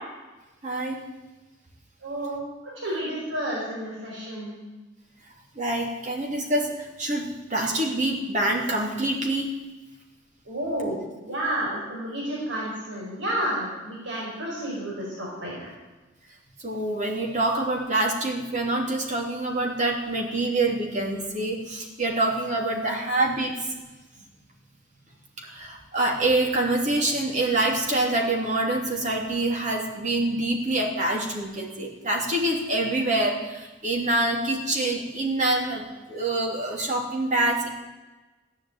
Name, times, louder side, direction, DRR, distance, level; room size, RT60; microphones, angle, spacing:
voice 1, 0.6-1.0 5.6-9.5 16.6-23.5 25.4-35.8 36.1-37.7, right 2 dB, 40° right, 0 dB, 3.1 m, -26 dB
voice 2, 2.0-4.5 10.5-11.0 11.2-15.7, right 1 dB, 70° right, -4 dB, 4.9 m, -31 dB
14.5 x 10.5 x 8.9 m, 1.1 s
head